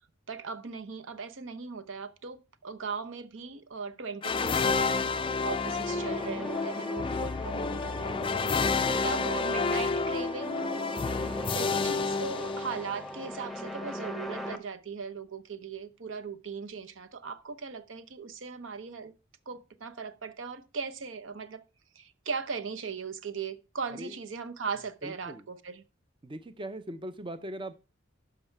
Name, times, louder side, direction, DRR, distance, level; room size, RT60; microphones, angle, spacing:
voice 1, 0.3-5.1 5.4-19.1 19.5-21.6 21.9-25.8, right 5 dB, 70° right, 0.8 m, -38 dB
sound 1, 4.2-13.1, left 4 dB, 25° left, 0.4 m, -30 dB
sound 2, 4.6-14.6, left 1 dB, ahead, 0.8 m, -39 dB
voice 2, 25.0-25.4 26.2-27.7, right 1 dB, 25° right, 0.6 m, -40 dB
12.0 x 4.8 x 4.4 m
head